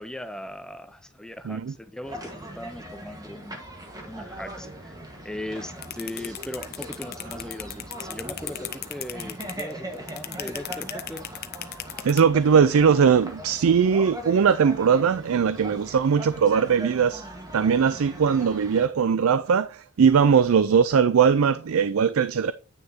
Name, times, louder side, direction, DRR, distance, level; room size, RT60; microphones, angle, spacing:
voice 1, 0.0-3.6 4.0-5.0 5.2-11.3, left 1 dB, 5° left, 0.4 m, -38 dB
sound 1, 2.0-18.9, right 1 dB, 15° right, 1.3 m, -40 dB
sound 2, 5.8-12.2, left 13 dB, 45° left, 0.7 m, -35 dB
voice 2, 12.0-17.3 17.5-22.5, right 6 dB, 70° right, 0.4 m, -20 dB
9.2 x 6.4 x 2.7 m
head